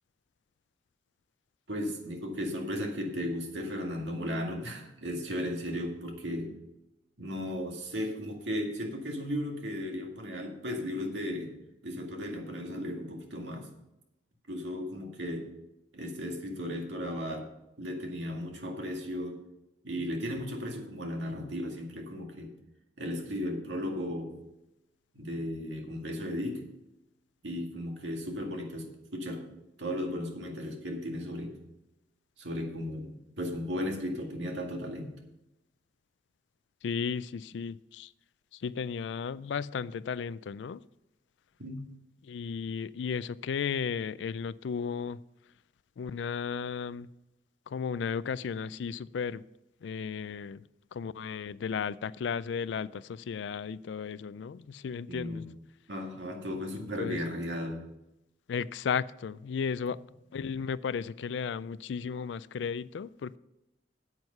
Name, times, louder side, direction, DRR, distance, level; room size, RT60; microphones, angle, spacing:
voice 1, 1.7-6.5 7.2-11.5 11.8-13.7 14.5-15.5 15.9-17.5 17.8-19.4 19.8-22.5 23.0-24.3 25.1-26.6 27.4-29.5 29.8-31.6 32.4-35.1 41.6-41.8 55.1-55.5 55.9-57.8, equal, 80° right, 2.0 m, -35 dB
voice 2, 36.8-38.1 38.5-40.8 42.2-45.2 46.0-47.1 47.7-49.4 49.8-50.6 50.9-55.5 56.8-57.2 58.5-60.0 60.3-63.4, left 6 dB, 75° left, 0.3 m, -34 dB
9.0 x 8.1 x 5.5 m
head